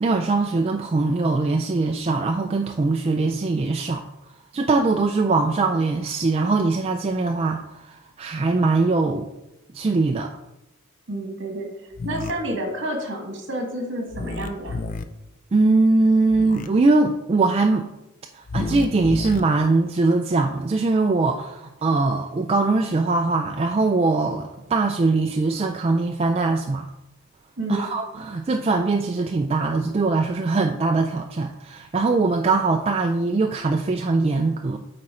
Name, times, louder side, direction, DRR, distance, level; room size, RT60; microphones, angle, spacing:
voice 1, 0.0-4.0 4.5-9.3 9.7-10.3 15.5-17.9 18.3-26.9 27.7-34.8, right 3 dB, 30° right, 3 dB, 0.3 m, -21 dB
voice 2, 11.1-14.8 27.6-27.9, right 1 dB, 60° right, 2 dB, 1.6 m, -30 dB
sound 1, 11.9-12.3 14.1-15.0 16.3-16.7 18.5-19.4, left 3 dB, 40° left, 0.4 m, -30 dB
8.8 x 4.3 x 3.7 m, 0.92 s
head